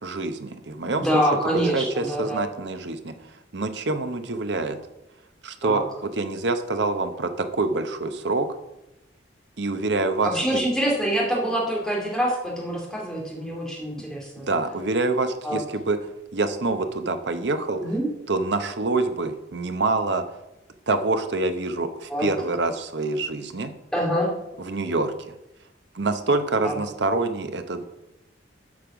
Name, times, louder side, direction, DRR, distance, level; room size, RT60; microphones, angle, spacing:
voice 1, 0.0-4.8 5.4-8.5 9.6-10.7 14.4-16.0 16.3-17.8 18.3-20.2 20.9-23.7 24.6-25.3 25.9-27.8, right 3 dB, 65° right, 8 dB, 0.8 m, -26 dB
voice 2, 1.0-2.5 5.6-5.8 10.2-14.5 15.4-15.6 17.8-18.1 22.1-22.3 23.9-24.3 26.6-26.7, equal, 5° left, -3 dB, 2.3 m, -25 dB
8.3 x 5.4 x 6.0 m, 0.92 s
head